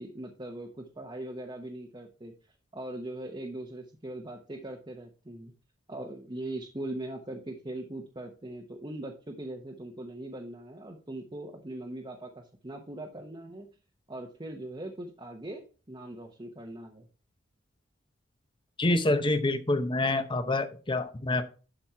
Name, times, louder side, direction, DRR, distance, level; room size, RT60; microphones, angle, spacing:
voice 1, 0.0-2.3 2.7-5.5 5.9-13.7 14.1-15.6 15.9-17.1, right 1 dB, 20° right, 0 dB, 1.0 m, -40 dB
voice 2, 18.8-21.4, left 2 dB, 20° left, 9 dB, 0.8 m, -27 dB
11.5 x 4.4 x 4.5 m, 0.36 s
head